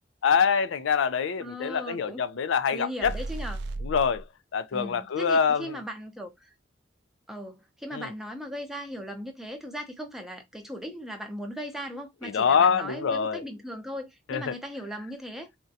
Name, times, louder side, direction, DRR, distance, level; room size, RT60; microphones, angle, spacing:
voice 1, 0.2-3.1 3.8-4.2 4.5-5.7 7.9-8.1 12.2-13.4 14.3-14.5, left 6 dB, 85° left, 0.4 m, -25 dB
voice 2, 1.4-2.2 2.7-3.6 4.7-6.5 7.3-15.5, equal, ahead, 0.6 m, -38 dB
sound 1, 3.0-4.2, right 2 dB, 60° right, 0.4 m, -34 dB
3.7 x 2.2 x 2.6 m
head